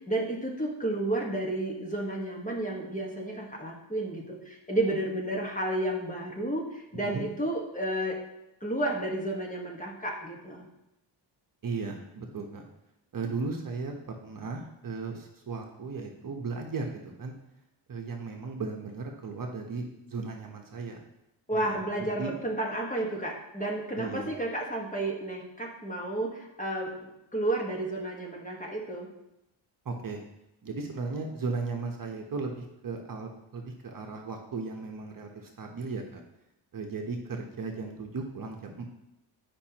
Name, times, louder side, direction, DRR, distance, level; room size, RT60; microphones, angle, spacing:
voice 1, 0.0-8.2 8.6-10.6 21.5-27.0 27.3-29.1, right 1 dB, 15° left, -1 dB, 1.4 m, -31 dB
voice 2, 6.9-7.2 11.6-12.6 13.1-17.3 17.9-21.0 21.5-22.3 24.0-24.3 29.8-30.2 30.6-36.2 36.7-38.9, right 4 dB, 40° right, 2 dB, 1.0 m, -36 dB
10.5 x 5.4 x 2.9 m, 0.86 s
cardioid pair, 100°, 49 cm